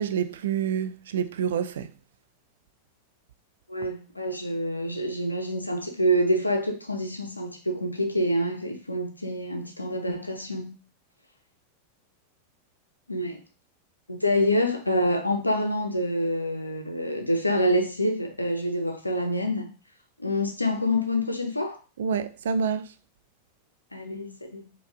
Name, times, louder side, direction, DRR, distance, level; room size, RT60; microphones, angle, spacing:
voice 1, 0.0-1.9 22.0-22.9, right 7 dB, 60° right, 0.3 m, -27 dB
voice 2, 3.7-10.7 13.1-13.4 14.1-19.7 20.2-21.8 23.9-24.7, equal, 85° left, 0.7 m, -27 dB
4.7 x 2.4 x 3.5 m
figure-of-eight pair, 90°, 0 cm